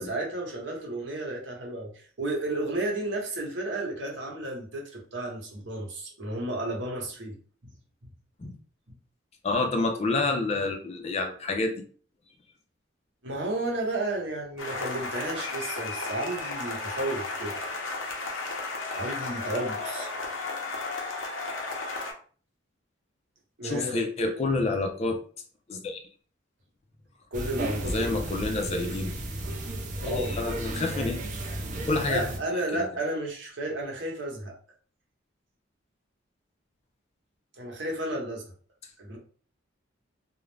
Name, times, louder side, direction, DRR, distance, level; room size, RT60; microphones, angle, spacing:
voice 1, 0.0-7.4 8.4-8.5 13.2-17.6 18.9-20.1 23.6-23.9 27.3-28.1 30.0-30.3 32.0-34.5 37.6-38.4 39.0-39.2, right 1 dB, 65° right, 0 dB, 0.9 m, -32 dB
voice 2, 9.4-11.8 23.6-25.2 25.7-26.0 27.8-29.1 30.1-31.2 31.9-32.3 32.7-32.9, left 3 dB, 35° left, 5 dB, 0.4 m, -28 dB
sound 1, 14.6-22.1, left 3 dB, 90° left, 0.6 m, -34 dB
sound 2, 27.3-32.4, right 1 dB, 40° right, 0.4 m, -34 dB
2.4 x 2.0 x 3.2 m, 0.43 s
head